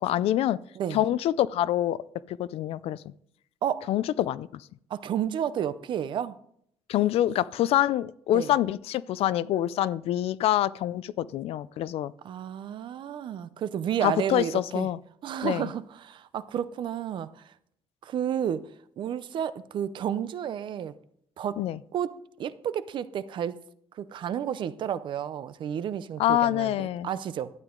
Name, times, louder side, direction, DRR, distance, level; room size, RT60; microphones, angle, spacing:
voice 1, 0.0-0.6 0.9-2.0 2.3-3.1 3.9-4.6 6.9-12.1 14.0-15.0 15.4-15.7 21.6-21.8 26.2-27.1, left 12 dB, 75° left, 0.4 m, -26 dB
voice 2, 4.9-6.4 8.3-8.5 12.2-14.9 15.2-17.5 18.0-18.7 19.0-20.9 21.4-21.6 21.9-23.6 24.0-27.5, right 9 dB, 50° right, 0.6 m, -31 dB
12.0 x 9.2 x 3.8 m
cardioid pair, 170°, 10 cm